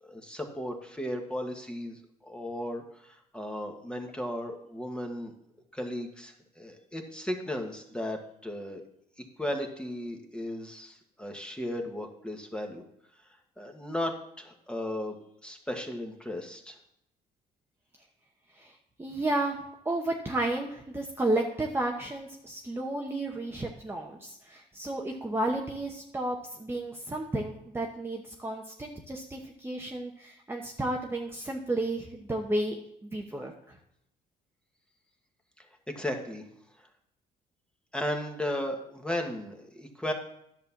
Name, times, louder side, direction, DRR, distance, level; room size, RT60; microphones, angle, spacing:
voice 1, 0.0-5.3 5.7-8.2 8.4-8.8 9.4-12.8 13.6-15.1 15.4-16.8 35.6-36.4 37.9-40.1, left 1 dB, 5° left, 3 dB, 1.5 m, -35 dB
voice 2, 18.6-19.6 19.8-33.8, right 1 dB, 15° right, 0 dB, 1.0 m, -32 dB
10.5 x 4.3 x 7.2 m, 0.77 s
cardioid pair, 110°, 17 cm